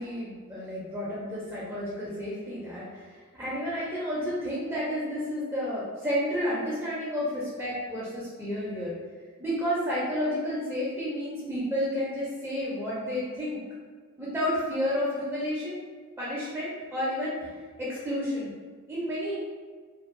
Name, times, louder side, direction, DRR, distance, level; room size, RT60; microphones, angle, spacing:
voice 1, 0.0-8.9 9.4-13.6 14.2-15.8 16.2-17.5 17.8-18.5 18.9-19.4, equal, 10° right, -8 dB, 0.5 m, -31 dB
2.6 x 2.2 x 2.5 m, 1.5 s
head